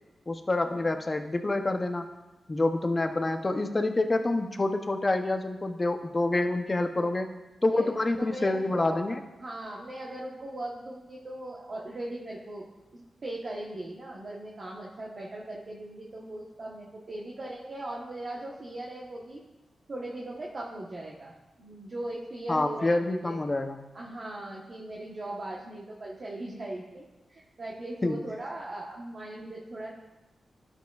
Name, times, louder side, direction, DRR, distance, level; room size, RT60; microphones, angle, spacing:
voice 1, 0.3-2.1 2.5-7.3 7.6-9.2 22.5-23.9 28.0-28.2, left 2 dB, 25° left, 7 dB, 0.6 m, -27 dB
voice 2, 8.2-9.0 9.4-12.7 12.9-19.4 19.9-21.3 21.6-23.4 23.9-27.0 27.3-29.9, right 1 dB, 45° right, -4 dB, 1.0 m, -39 dB
11.5 x 7.0 x 2.3 m, 1.1 s
wide cardioid pair, 105°, 0 cm